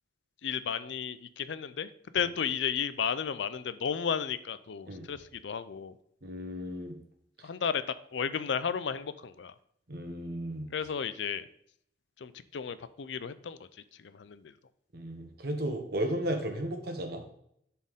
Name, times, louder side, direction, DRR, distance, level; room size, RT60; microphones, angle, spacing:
voice 1, 0.4-6.0 7.4-9.5 10.7-11.5 12.2-13.7 14.0-14.5, left 7 dB, 75° left, 14 dB, 0.5 m, -33 dB
voice 2, 6.2-6.9 9.9-10.6 14.9-17.3, right 1 dB, 55° right, 4 dB, 1.3 m, -34 dB
10.5 x 4.3 x 3.7 m, 0.71 s
head